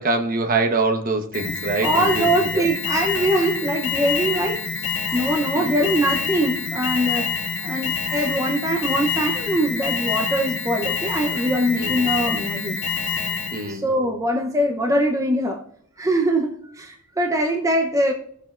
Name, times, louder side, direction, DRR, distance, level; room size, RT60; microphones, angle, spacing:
voice 1, 0.0-2.6 5.5-5.8 11.8-12.1 13.5-13.9, right 3 dB, 40° right, 5 dB, 1.0 m, -24 dB
Alarm, 1.3-13.7, left 5 dB, 60° left, 1.8 m, -26 dB
voice 2, 1.8-7.3 7.6-12.8 13.7-15.6 16.0-18.1, right 1 dB, 15° right, 2 dB, 0.7 m, -22 dB
16.0 x 6.6 x 2.5 m, 0.66 s
head